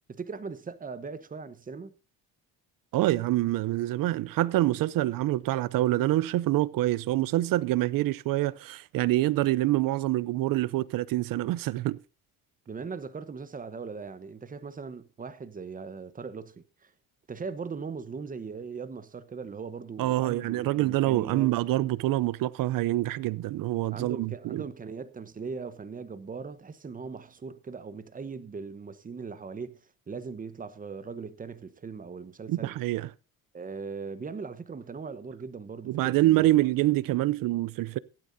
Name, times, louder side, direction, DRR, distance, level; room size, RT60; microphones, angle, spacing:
voice 1, 0.1-1.9 12.7-16.9 17.3-21.5 23.9-29.8 30.1-32.7 33.5-36.5, right 5 dB, 20° right, 1.0 m, -39 dB
voice 2, 2.9-12.0 20.0-24.6 32.5-33.1 35.9-38.0, right 16 dB, 65° right, 0.7 m, -26 dB
16.0 x 12.0 x 2.7 m
cardioid pair, 120°, 37 cm